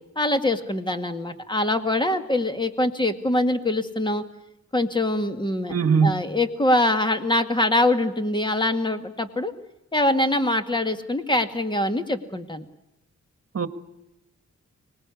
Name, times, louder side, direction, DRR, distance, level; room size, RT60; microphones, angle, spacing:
voice 1, 0.2-4.2 4.7-5.8 6.0-9.5 9.9-12.7, left 1 dB, 15° left, 8 dB, 2.1 m, -23 dB
voice 2, 5.7-6.1 13.5-13.7, right 5 dB, 50° right, 11 dB, 1.6 m, -20 dB
24.5 x 19.5 x 8.5 m, 0.92 s
wide cardioid pair, 95°, 29 cm